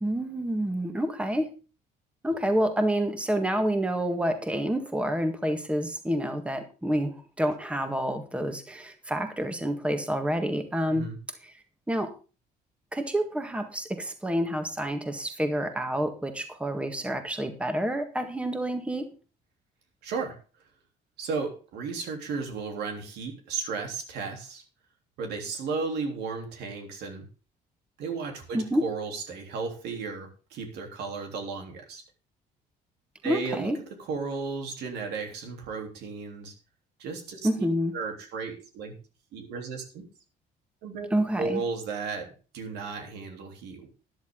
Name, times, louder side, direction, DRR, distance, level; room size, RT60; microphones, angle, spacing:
voice 1, 0.0-1.5 2.2-11.1 11.4-11.5 11.9-12.1 12.9-19.1 28.5-28.8 33.2-33.8 37.4-37.9 41.1-41.6, equal, 5° right, 6 dB, 1.7 m, -28 dB
voice 2, 20.0-20.4 21.2-24.6 25.2-27.3 28.0-32.0 33.2-33.7 34.1-36.5 37.0-37.7 37.9-38.9 39.3-40.0 40.8-41.1 41.4-43.9, right 4 dB, 80° right, 3 dB, 3.4 m, -34 dB
12.5 x 11.0 x 3.8 m, 0.34 s
cardioid pair, 110°, 17 cm